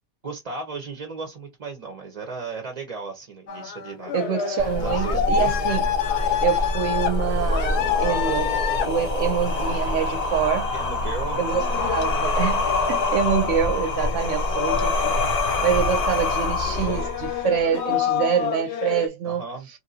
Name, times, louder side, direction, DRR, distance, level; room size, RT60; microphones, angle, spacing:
voice 1, 0.2-4.1 4.8-5.5 9.7-9.9 10.7-11.4 19.2-19.7, right 4 dB, 40° right, 0.7 m, -35 dB
sound 1, 3.5-19.1, left 8 dB, 65° left, 0.8 m, -28 dB
voice 2, 4.1-5.9 6.4-10.7 11.4-15.3 15.6-19.4, right 8 dB, 70° right, 0.9 m, -26 dB
sound 2, 4.6-17.6, left 2 dB, 40° left, 0.6 m, -26 dB
3.0 x 2.7 x 2.7 m
omnidirectional pair, 1.4 m